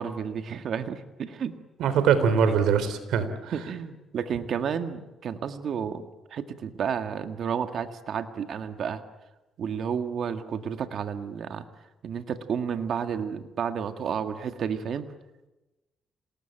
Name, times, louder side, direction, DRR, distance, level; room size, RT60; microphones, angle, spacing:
voice 1, 0.0-1.6 3.5-9.0 9.6-11.7 12.0-15.1, right 7 dB, 60° right, 8 dB, 1.8 m, -31 dB
voice 2, 1.8-3.5, right 7 dB, 80° right, 11 dB, 3.6 m, -23 dB
27.0 x 19.5 x 9.0 m, 1.1 s
cardioid pair, 90°, 0 cm